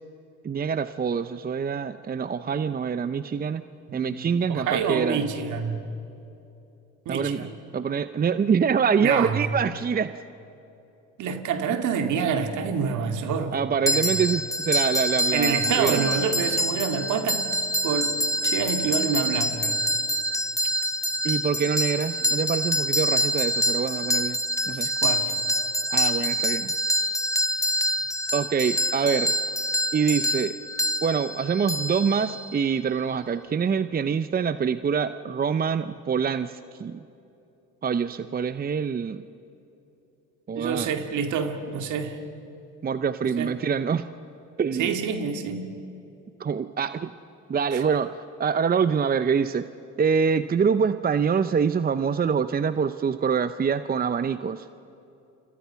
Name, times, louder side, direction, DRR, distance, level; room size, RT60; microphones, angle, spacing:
voice 1, 0.4-3.6 3.9-5.2 7.1-7.4 7.7-10.1 13.5-16.1 21.2-24.4 24.7-24.9 25.9-26.7 28.3-29.3 29.9-30.5 31.0-37.0 37.8-39.2 40.5-40.9 42.8-44.1 44.6-44.9 46.4-47.1 47.5-49.6 50.0-54.7, right 6 dB, 30° right, 12 dB, 0.7 m, -25 dB
voice 2, 3.9-5.8 7.1-7.5 9.0-9.5 11.2-13.6 13.9-14.2 15.3-17.5 17.8-19.8 24.7-25.3 40.5-42.2 43.4-43.5 44.8-45.7 47.7-47.8, right 6 dB, 65° right, 6 dB, 2.4 m, -27 dB
sound 1, 13.9-32.6, equal, 10° left, 1.3 m, -26 dB
29.5 x 26.0 x 5.9 m, 2.9 s
hypercardioid pair, 70°, 33 cm